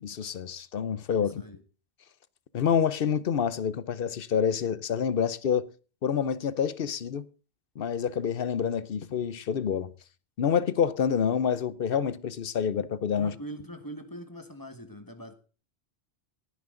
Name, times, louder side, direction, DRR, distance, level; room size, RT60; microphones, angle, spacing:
voice 1, 0.0-1.4 2.5-5.7 6.0-7.2 7.8-9.9 10.4-13.3, left 7 dB, 60° left, 0.9 m, -27 dB
voice 2, 1.2-1.6 13.2-15.3, right 1 dB, 20° left, 1.6 m, -42 dB
18.5 x 9.5 x 3.8 m
omnidirectional pair, 1.1 m